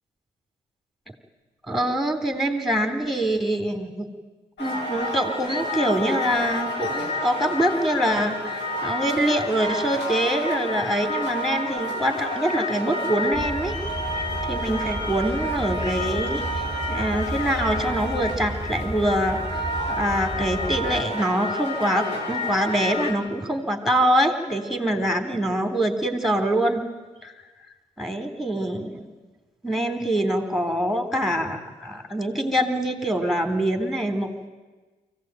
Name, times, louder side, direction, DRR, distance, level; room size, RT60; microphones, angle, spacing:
voice 1, 1.7-4.1 4.6-13.7 14.2-16.4 16.9-26.8 27.2-27.3 28.0-29.1 29.6-34.5, right 1 dB, ahead, 6 dB, 3.8 m, -24 dB
sound 1, 4.6-23.1, left 1 dB, 70° left, 4.9 m, -30 dB
sound 2, 13.3-21.0, right 1 dB, 15° left, 3.1 m, -33 dB
23.5 x 16.5 x 9.3 m, 1.3 s
hypercardioid pair, 50°, 19 cm